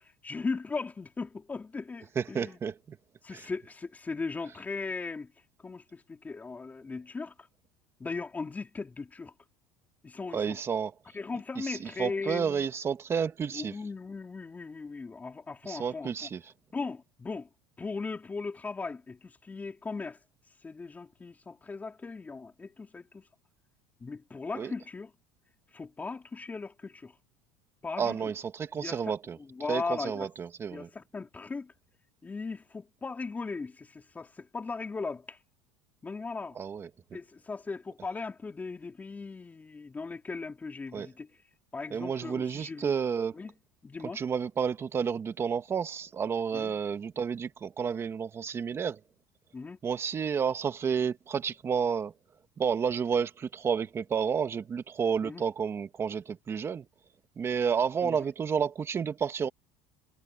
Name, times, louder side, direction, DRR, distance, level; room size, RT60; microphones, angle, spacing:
voice 1, 0.0-2.6 3.2-5.3 5.6-7.3 8.0-9.3 10.0-10.6 11.1-12.7 13.5-16.3 16.7-17.5 17.8-20.2 20.6-23.2 24.0-25.1 25.7-27.1 27.8-28.3 28.7-30.3 30.7-31.7 32.2-35.4 36.0-36.6 37.1-41.3 41.7-43.0 43.3-43.5 43.8-44.2 46.5-46.7 49.5-49.8 55.2-55.4 58.0-58.3, left 4 dB, 15° left, 3.9 m, -38 dB
voice 2, 2.2-3.0 3.3-3.4 10.3-10.9 11.6-13.8 15.6-16.4 24.5-24.7 28.0-29.4 29.7-30.9 36.6-36.9 40.9-41.1 41.9-43.3 44.1-49.0 49.8-52.1 52.6-56.9 57.4-59.5, right 6 dB, 30° right, 2.0 m, -31 dB
supercardioid pair, 125°, 9 cm